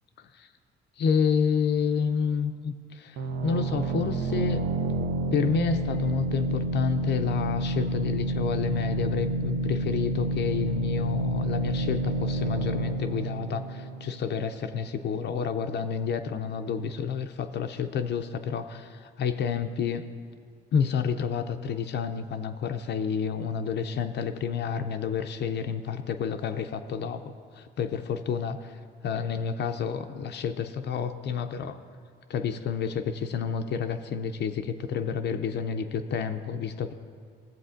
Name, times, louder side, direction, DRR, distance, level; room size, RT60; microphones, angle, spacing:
voice 1, 0.2-0.5 1.0-4.6 5.3-20.1 20.7-31.8 32.3-36.9, left 6 dB, 60° left, 7 dB, 0.4 m, -29 dB
sound 1, 3.2-14.7, right 2 dB, 85° right, 0.5 m, -29 dB
15.5 x 7.6 x 2.5 m, 2.1 s
cardioid pair, 90°, 20 cm